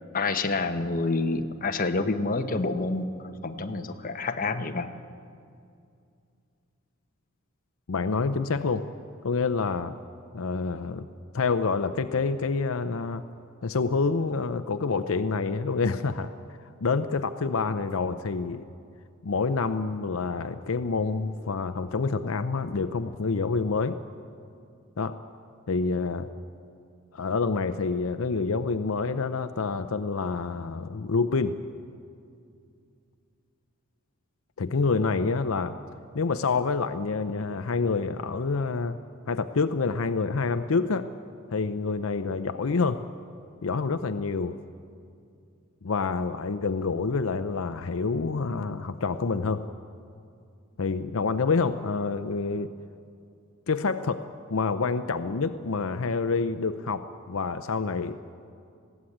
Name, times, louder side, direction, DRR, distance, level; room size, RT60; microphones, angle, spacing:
voice 1, 0.1-4.9, left 3 dB, 40° left, 7 dB, 1.0 m, -28 dB
voice 2, 7.9-8.8 9.2-10.0 10.3-11.1 11.3-13.2 13.6-16.3 16.8-18.7 19.2-24.0 25.0-25.2 25.7-26.3 27.1-31.6 34.6-35.8 36.1-39.0 39.3-41.1 41.5-43.0 43.6-44.6 45.8-49.6 50.8-52.7 53.7-54.2 54.5-58.3, left 4 dB, 70° left, 10 dB, 0.6 m, -27 dB
20.5 x 16.0 x 8.6 m, 2.4 s
head